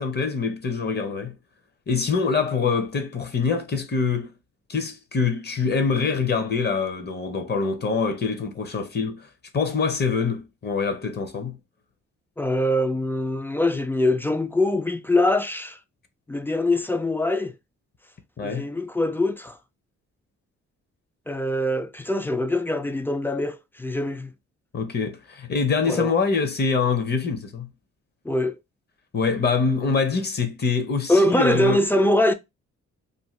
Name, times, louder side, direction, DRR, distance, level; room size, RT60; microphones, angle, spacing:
voice 1, 0.0-1.3 1.9-4.3 4.7-9.3 9.5-11.6 18.4-18.7 24.7-27.7 29.1-31.8, left 5 dB, 35° left, 0.7 m, -24 dB
voice 2, 12.4-15.8 16.3-17.5 18.4-19.6 21.3-24.3 25.9-26.1 28.3-28.6 31.1-32.3, left 1 dB, 10° left, 0.3 m, -23 dB
2.6 x 2.2 x 3.1 m
cardioid pair, 80°, 30 cm